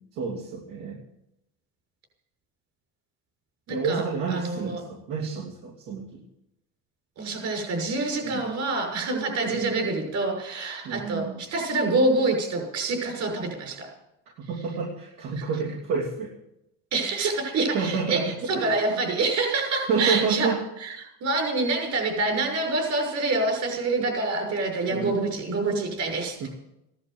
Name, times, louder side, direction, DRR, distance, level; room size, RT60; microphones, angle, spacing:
voice 1, 0.1-1.0 3.7-6.2 8.2-8.5 9.5-9.8 10.8-11.4 14.4-16.3 17.5-18.8 19.9-20.7 24.9-25.3 26.4-26.5, right 5 dB, 75° right, -3 dB, 3.1 m, -29 dB
voice 2, 3.7-4.0 4.3-4.8 7.2-13.9 15.4-15.5 16.9-20.5 20.8-26.5, right 3 dB, 60° right, 2 dB, 6.7 m, -26 dB
16.5 x 11.0 x 8.0 m, 0.86 s
cardioid pair, 125°, 32 cm